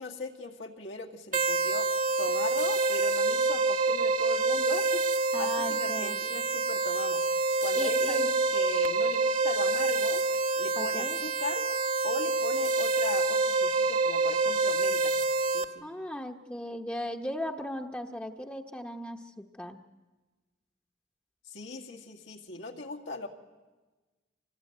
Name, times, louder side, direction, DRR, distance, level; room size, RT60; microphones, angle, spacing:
voice 1, 0.0-1.9 2.2-7.3 7.6-10.2 10.6-11.7 12.0-15.2 15.5-15.9 21.4-23.3, left 3 dB, 85° left, 1 dB, 2.1 m, -38 dB
sound 1, 1.3-15.6, right 3 dB, 45° right, 0.9 m, -27 dB
voice 2, 5.3-6.2 7.8-8.3 10.8-11.2 15.8-19.8, equal, 10° left, 1 dB, 0.9 m, -37 dB
25.0 x 20.0 x 9.3 m, 1.3 s
head